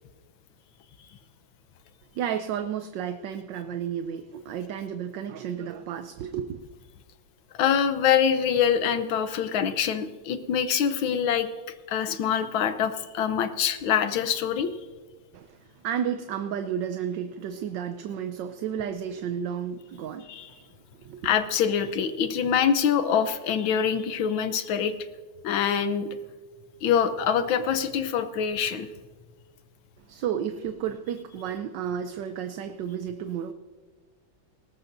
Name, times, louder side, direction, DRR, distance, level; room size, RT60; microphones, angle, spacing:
voice 1, 2.1-6.6 15.3-20.7 21.0-21.3 30.1-33.5, right 8 dB, 70° right, 9 dB, 1.2 m, -32 dB
voice 2, 7.5-11.5 11.9-14.7 20.3-20.5 21.2-24.9 25.4-26.1 26.8-28.9, left 8 dB, 80° left, 10 dB, 1.6 m, -25 dB
19.5 x 18.0 x 2.6 m, 1.4 s
omnidirectional pair, 2.2 m